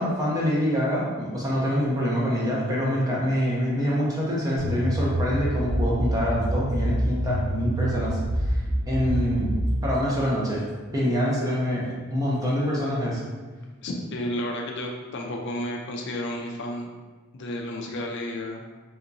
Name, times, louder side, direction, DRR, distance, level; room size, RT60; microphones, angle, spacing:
voice 1, 0.0-10.6 10.9-13.2, equal, 15° right, -6 dB, 0.6 m, -25 dB
sound 1, 4.6-9.8, equal, 40° right, 1.1 m, -26 dB
voice 2, 13.8-16.9 17.3-18.6, left 1 dB, 50° left, 0 dB, 0.4 m, -32 dB
3.4 x 2.8 x 2.6 m, 1.3 s
head